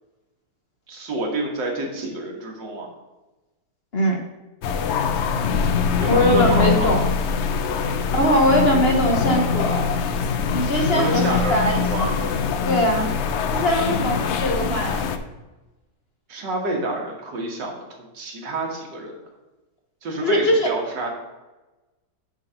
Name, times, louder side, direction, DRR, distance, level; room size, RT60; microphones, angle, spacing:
voice 1, 0.9-2.9 6.0-7.0 7.8-8.0 10.8-12.3 16.3-17.7 18.0-19.1 20.0-21.1, right 1 dB, 85° right, 0 dB, 2.2 m, -28 dB
sound 1, 4.6-15.2, left 5 dB, 75° left, 0.6 m, -23 dB
voice 2, 6.1-7.0 8.1-9.9 10.5-11.8 12.6-13.1 13.5-15.1 20.2-20.7, equal, 45° left, 1 dB, 1.0 m, -21 dB
9.6 x 4.2 x 5.6 m, 1.1 s
omnidirectional pair, 1.9 m